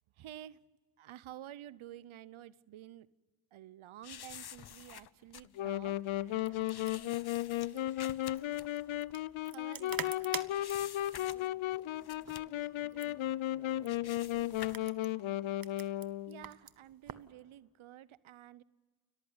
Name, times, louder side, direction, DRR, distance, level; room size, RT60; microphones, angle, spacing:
voice 1, 0.2-0.7 1.0-3.1 3.5-6.0 9.5-10.1 16.3-18.6, right 12 dB, 85° right, 20 dB, 0.8 m, -51 dB
sound 1, 4.0-9.9 10.1-11.7 12.0-12.6 13.2-13.3 13.7-14.9, left 9 dB, 55° left, 0.9 m, -50 dB
Wind instrument woodwind instrument, 5.6-16.5, left 14 dB, 80° left, 0.6 m, -35 dB
sound 2, 6.2-17.3, right 7 dB, 45° right, 1.2 m, -48 dB
voice 2, 10.8-14.6, right 2 dB, 10° right, 7 dB, 4.8 m, -63 dB
29.0 x 14.5 x 9.5 m, 1.4 s
cardioid pair, 50°, 47 cm